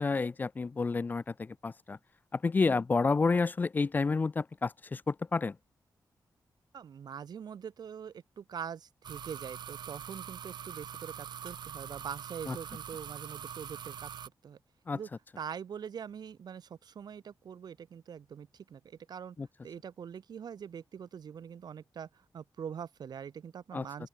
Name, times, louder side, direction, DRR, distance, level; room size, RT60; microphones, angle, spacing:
voice 1, 0.0-2.0 2.3-5.5 12.5-12.6 14.9-15.0 19.4-19.5 23.7-23.8, left 4 dB, 25° left, 0.3 m, -30 dB
voice 2, 6.7-14.1 14.4-14.6 14.9-15.1 15.4-19.4 19.6-24.1, right 7 dB, 70° right, 5.0 m, -43 dB
sound 1, 9.0-14.3, right 8 dB, 85° right, 1.2 m, -43 dB
open air
wide cardioid pair, 170°, 7 cm